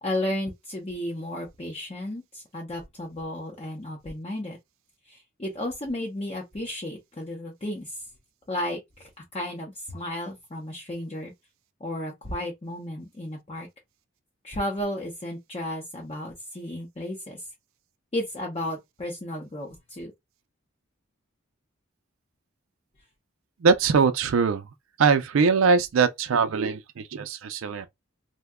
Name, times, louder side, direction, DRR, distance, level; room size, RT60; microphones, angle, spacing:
voice 1, 0.0-4.6 5.1-8.0 8.5-11.3 11.8-13.7 14.4-17.5 18.1-20.1, left 1 dB, 30° left, 0.6 m, -33 dB
voice 2, 23.6-24.7 25.0-27.9, right 5 dB, 70° right, 0.4 m, -22 dB
2.7 x 2.2 x 3.4 m
head